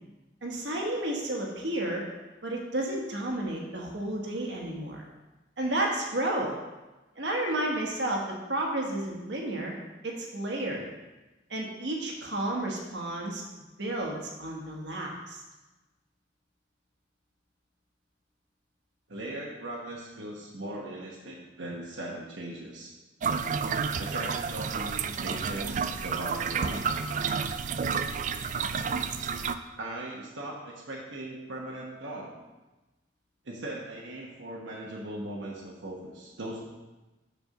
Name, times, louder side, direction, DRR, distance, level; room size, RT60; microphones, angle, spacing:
voice 1, 0.4-2.0 2.4-5.0 5.6-6.5 7.1-8.2 8.5-9.8 10.0-10.9 11.5-13.4 13.8-15.4, right 1 dB, 65° right, -1 dB, 1.4 m, -31 dB
voice 2, 19.1-22.9 24.0-26.9 29.8-32.3 33.4-36.6, right 1 dB, 80° right, -3 dB, 1.1 m, -39 dB
sound 1, 23.2-29.5, right 6 dB, 40° right, 0.3 m, -30 dB
6.7 x 4.5 x 6.5 m, 1.1 s
head